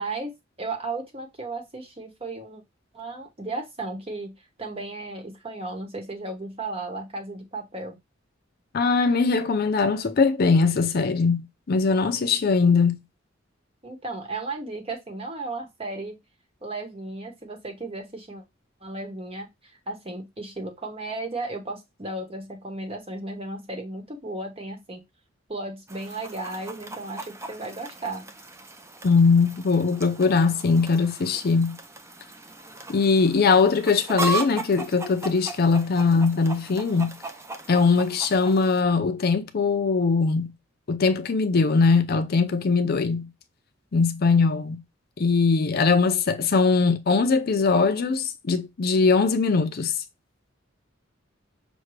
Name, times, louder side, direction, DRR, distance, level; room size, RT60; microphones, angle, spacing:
voice 1, 0.0-2.6 2.9-8.0 13.8-16.2 16.6-18.4 18.8-19.5 19.9-25.0 25.5-28.2, right 2 dB, 30° right, 1.0 m, -35 dB
voice 2, 8.7-13.0 29.0-31.8 32.9-37.2 37.7-40.5 40.9-43.3 43.9-44.8 45.2-49.9, left 4 dB, 50° left, 0.5 m, -21 dB
Chicken rooster, 25.9-38.8, right 2 dB, 15° right, 0.5 m, -37 dB
6.1 x 2.2 x 3.1 m
head